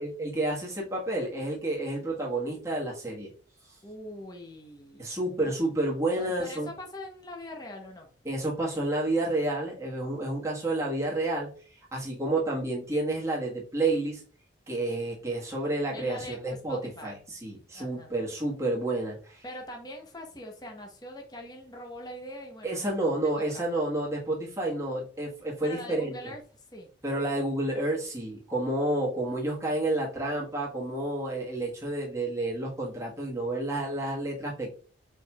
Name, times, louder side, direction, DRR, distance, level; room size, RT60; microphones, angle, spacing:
voice 1, 0.0-3.3 3.7-3.8 5.0-6.7 8.2-11.5 11.9-14.2 14.7-19.4 22.6-26.1 27.0-34.7, right 2 dB, 15° right, -4 dB, 1.4 m, -30 dB
voice 2, 3.8-5.1 5.4-5.5 6.2-8.1 15.9-16.4 16.7-17.2 17.7-18.1 19.4-22.9 23.4-23.6 25.6-26.9, left 1 dB, 20° left, 2 dB, 0.8 m, -42 dB
4.7 x 4.5 x 2.3 m, 0.40 s
head